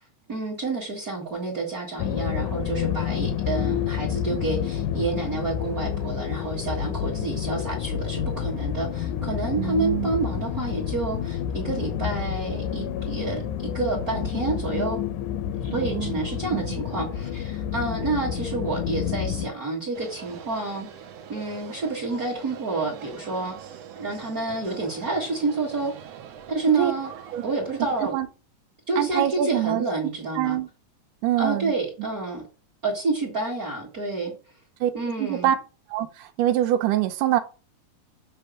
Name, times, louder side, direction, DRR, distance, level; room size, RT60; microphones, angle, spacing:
voice 1, 0.3-15.0 15.6-20.9 21.3-23.6 24.0-25.9 26.5-27.1 27.4-28.1 28.9-30.6 31.4-32.4 32.8-34.3 34.9-35.5, right 3 dB, 35° right, 1.9 m, -29 dB
sound 1, 2.0-19.5, left 9 dB, 80° left, 2.1 m, -29 dB
voice 2, 9.6-10.1 15.7-16.2 16.5-16.6 26.8-26.9 27.3-27.5 28.1-28.3 29.0-29.8 30.4-30.7 31.2-31.7 34.8-34.9 35.2-35.6 35.9-37.4, right 12 dB, 90° right, 2.3 m, -24 dB
sound 2, 19.9-28.1, right 8 dB, 65° right, 1.8 m, -43 dB
7.9 x 3.4 x 6.2 m
omnidirectional pair, 3.6 m